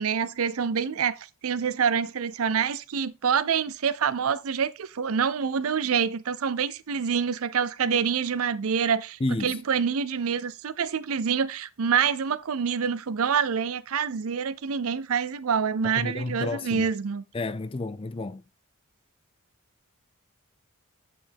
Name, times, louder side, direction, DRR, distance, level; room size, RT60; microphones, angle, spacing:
voice 1, 0.0-17.2, right 6 dB, 65° right, 0.5 m, -26 dB
voice 2, 9.2-9.6 15.8-16.9 17.3-18.4, left 2 dB, 25° left, 0.4 m, -31 dB
8.3 x 5.1 x 3.5 m
head